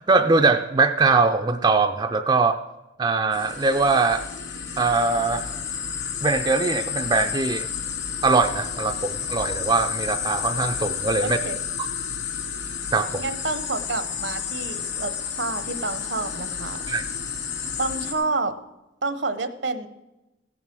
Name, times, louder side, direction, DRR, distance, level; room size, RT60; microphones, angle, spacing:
voice 1, 0.0-2.6 3.0-4.2 4.8-5.4 6.2-7.7 8.2-11.4 12.9-13.2 16.9-17.0, right 3 dB, 25° right, 7 dB, 0.4 m, -21 dB
sound 1, 3.3-18.1, left 7 dB, 75° left, 2.7 m, -31 dB
voice 2, 11.2-11.6 13.2-16.8 17.8-18.5 19.0-19.9, right 3 dB, 70° right, 11 dB, 0.9 m, -29 dB
16.0 x 7.4 x 6.0 m, 1.0 s
head